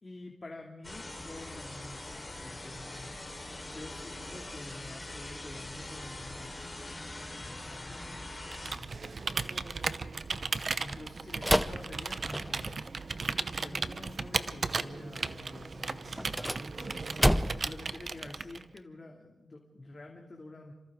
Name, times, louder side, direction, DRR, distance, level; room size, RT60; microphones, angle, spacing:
voice 1, 0.0-6.7 7.4-8.3 8.7-10.0 10.8-12.8 13.6-20.7, left 2 dB, 35° left, 0 dB, 2.4 m, -48 dB
sound 1, 0.8-8.7, left 1 dB, 15° left, 4.0 m, -43 dB
Computer keyboard, 8.5-18.8, right 4 dB, 45° right, 0.8 m, -36 dB
sound 2, 11.4-12.8 16.1-17.8, equal, ahead, 0.6 m, -29 dB
30.0 x 26.5 x 3.7 m, 1.1 s
wide cardioid pair, 110°, 0 cm